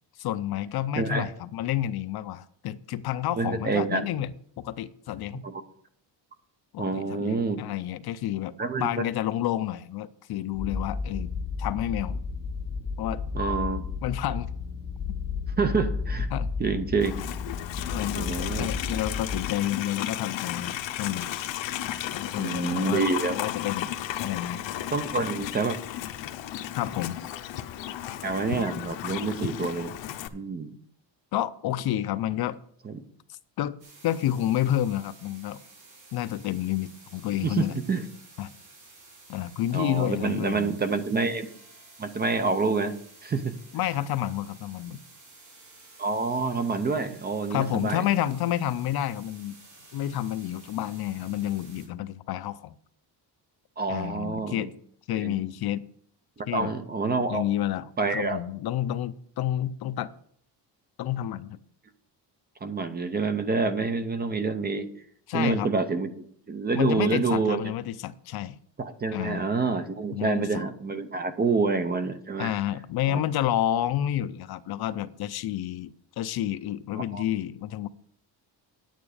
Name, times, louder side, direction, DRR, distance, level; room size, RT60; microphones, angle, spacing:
voice 1, 0.2-5.4 6.7-8.5 8.8-11.3 11.6-12.2 13.0-13.2 14.0-14.5 16.3-16.5 17.9-21.3 22.1-24.7 26.8-27.2 31.3-32.6 33.3-33.7 34.0-35.6 36.1-37.8 38.4-38.5 39.3-40.8 43.7-45.0 47.5-49.5 49.9-52.7 53.9-54.7 55.1-55.8 56.5-56.7 57.3-60.1 61.0-61.6 65.3-65.7 66.7-68.6 69.1-69.5 70.1-70.6 72.4-77.9, left 12 dB, 55° left, 0.5 m, -30 dB
voice 2, 1.0-1.3 3.4-4.1 5.4-5.6 6.8-7.6 8.6-9.0 13.3-13.9 15.6-16.3 16.6-17.1 18.2-18.7 22.4-23.4 24.9-25.8 28.2-29.9 30.3-30.8 32.8-32.9 37.4-38.0 39.7-41.5 42.0-42.9 43.2-43.6 46.0-48.0 53.8-54.7 55.1-55.3 56.5-57.4 58.0-58.4 62.6-64.9 65.3-67.6 68.8-72.5 73.1-73.2 77.0-77.2, right 4 dB, 20° right, 0.6 m, -27 dB
sound 1, 10.5-19.5, left 5 dB, 25° left, 2.2 m, -33 dB
Livestock farm animals working animals, 17.0-30.3, left 12 dB, 80° left, 0.9 m, -34 dB
sound 2, 33.8-51.9, right 3 dB, 55° right, 5.3 m, -52 dB
9.7 x 9.1 x 4.9 m
cardioid pair, 180°, 45 cm